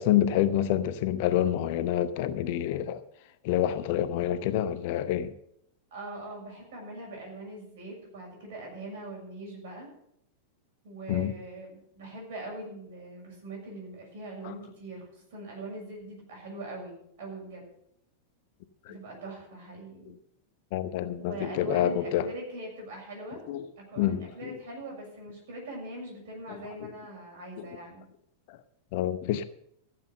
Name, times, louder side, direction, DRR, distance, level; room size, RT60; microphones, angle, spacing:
voice 1, 0.0-3.0 3.4-5.3 11.1-11.3 14.4-14.5 18.9-19.0 20.7-22.3 23.5-23.6 24.0-24.6 26.8-26.9 28.5-28.6 28.9-29.4, left 11 dB, 50° left, 0.8 m, -27 dB
voice 2, 5.9-9.9 10.8-17.6 18.9-20.1 21.2-23.4 23.8-28.0, right 2 dB, 55° right, 6.7 m, -42 dB
15.0 x 7.8 x 6.6 m
figure-of-eight pair, 90°, 0 cm